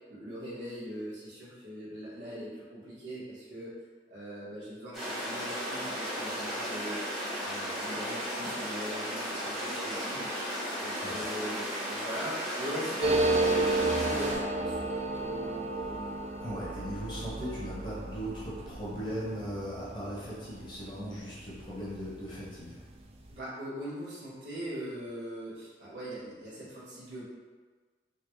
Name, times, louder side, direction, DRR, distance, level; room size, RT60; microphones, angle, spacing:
voice 1, 0.0-3.7 4.1-7.2 7.4-10.3 10.8-16.2 23.3-27.2, equal, 80° right, -9 dB, 1.4 m, -41 dB
sound 1, 4.9-14.3, equal, ahead, 1.1 m, -35 dB
sound 2, 13.0-22.2 22.5-22.6 22.8-23.3, right 2 dB, 35° right, 0.3 m, -32 dB
voice 2, 16.4-22.8, equal, 25° left, -8 dB, 1.1 m, -38 dB
3.9 x 2.3 x 3.2 m, 1.4 s
head